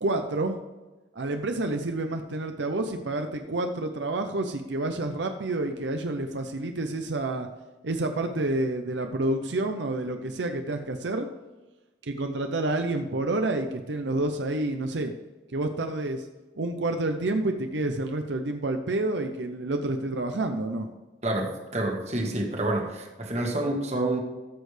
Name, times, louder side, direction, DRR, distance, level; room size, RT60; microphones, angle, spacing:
voice 1, 0.0-0.6 1.1-7.5 7.8-11.3 12.0-15.1 15.5-16.3 16.6-20.9, right 2 dB, 80° right, 6 dB, 0.7 m, -29 dB
voice 2, 21.2-24.2, right 1 dB, 35° right, 1 dB, 1.5 m, -28 dB
14.0 x 6.5 x 3.3 m, 1.2 s
head